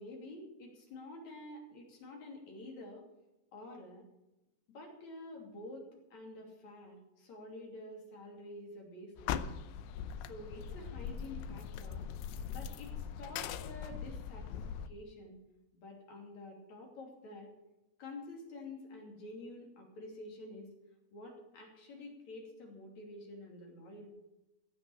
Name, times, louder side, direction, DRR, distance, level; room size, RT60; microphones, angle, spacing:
voice 1, 0.0-3.0 3.5-4.0 4.7-5.8 6.1-9.6 10.2-12.0 12.5-12.9 13.2-14.5 14.9-15.4 15.7-17.5 18.0-20.7 21.1-24.2, left 2 dB, 45° left, 0 dB, 3.9 m, -49 dB
sound 1, 9.2-14.9, left 8 dB, 90° left, 2.8 m, -41 dB
16.0 x 7.7 x 7.2 m, 0.95 s
omnidirectional pair, 4.7 m